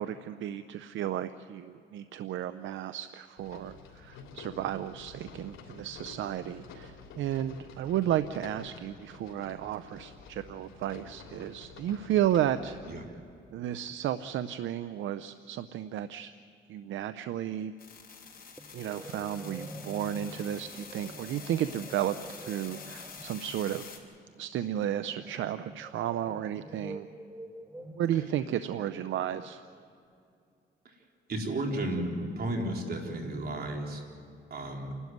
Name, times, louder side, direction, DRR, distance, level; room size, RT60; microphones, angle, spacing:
voice 1, 0.0-12.8 13.5-16.3 16.7-17.7 18.7-23.8 24.4-27.1 27.8-29.6, right 11 dB, 75° right, 12 dB, 0.6 m, -33 dB
sound 1, 3.4-13.0, left 5 dB, 85° left, 3.3 m, -49 dB
sound 2, 17.8-24.0, left 5 dB, 45° left, 5.2 m, -47 dB
sound 3, 18.6-29.9, right 1 dB, 10° right, 1.1 m, -48 dB
voice 2, 31.3-34.0 34.5-35.0, right 1 dB, 50° right, 1 dB, 4.2 m, -33 dB
29.5 x 12.5 x 9.4 m, 2.5 s
cardioid pair, 90°, 20 cm